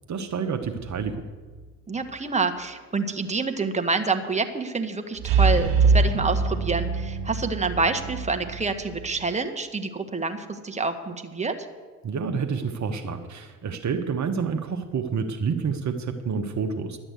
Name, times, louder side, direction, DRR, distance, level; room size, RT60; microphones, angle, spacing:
voice 1, 0.1-1.2 12.0-17.0, right 5 dB, 45° right, 5 dB, 1.2 m, -28 dB
sound 1, 0.6-1.2 5.2-9.3, right 4 dB, 60° right, 2.1 m, -24 dB
voice 2, 1.9-11.7, right 4 dB, 15° right, 6 dB, 1.5 m, -27 dB
11.5 x 8.8 x 8.2 m, 1.4 s
hypercardioid pair, 60°, 39 cm